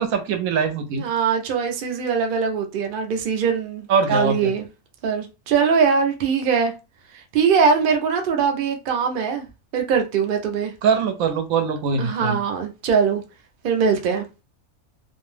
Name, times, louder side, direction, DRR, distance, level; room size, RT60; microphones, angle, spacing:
voice 1, 0.0-1.0 3.9-4.5 10.8-12.4, right 5 dB, 80° right, 1.0 m, -22 dB
voice 2, 0.9-4.7 5.0-6.7 7.3-9.5 9.7-10.7 12.0-13.2 13.6-14.3, right 6 dB, 60° right, 0.5 m, -21 dB
2.5 x 2.1 x 3.1 m
omnidirectional pair, 1.5 m